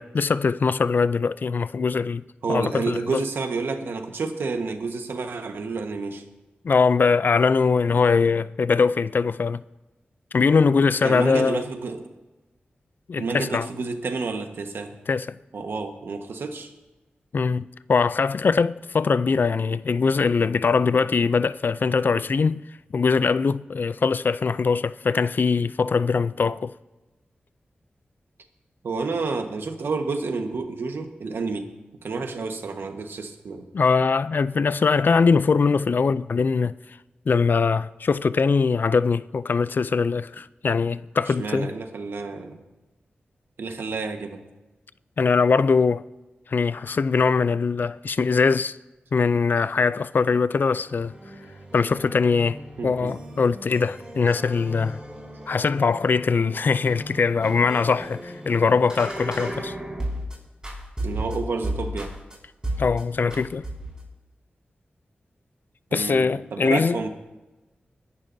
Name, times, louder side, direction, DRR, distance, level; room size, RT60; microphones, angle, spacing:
voice 1, 0.0-2.2 2.5-3.0 6.6-9.6 10.3-11.6 13.1-13.7 15.1-15.3 17.3-22.6 22.9-26.7 33.7-36.7 37.3-41.7 45.2-46.0 46.5-48.8 49.1-51.1 51.7-52.6 52.8-55.0 55.5-59.7 62.8-63.7 65.9-67.0, left 5 dB, 60° left, 0.4 m, -22 dB
voice 2, 2.4-6.2 11.0-12.1 13.2-14.9 15.5-16.7 28.8-31.7 32.0-33.7 41.3-42.6 43.6-44.4 52.8-53.2 61.0-62.1 65.9-67.1, right 4 dB, 85° right, 1.3 m, -30 dB
sound 1, 50.6-60.3 60.6-62.3 62.6-63.0 63.3-64.1, right 1 dB, 20° right, 5.4 m, -35 dB
21.5 x 11.5 x 2.7 m
wide cardioid pair, 75°, 4 cm